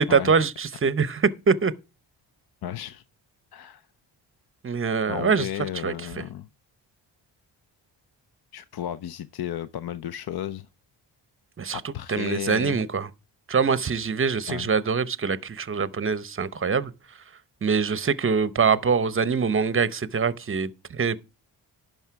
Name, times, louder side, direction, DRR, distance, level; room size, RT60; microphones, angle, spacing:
voice 1, 0.0-1.7 4.6-5.5 5.8-6.2 11.6-13.1 13.5-16.9 17.6-21.2, right 5 dB, 30° right, 0.7 m, -24 dB
voice 2, 2.6-3.0 3.5-3.8 5.1-6.5 8.5-10.7 11.7-12.8 14.5-14.7, left 11 dB, 55° left, 0.6 m, -33 dB
11.0 x 5.5 x 4.6 m
cardioid pair, 65°, 45 cm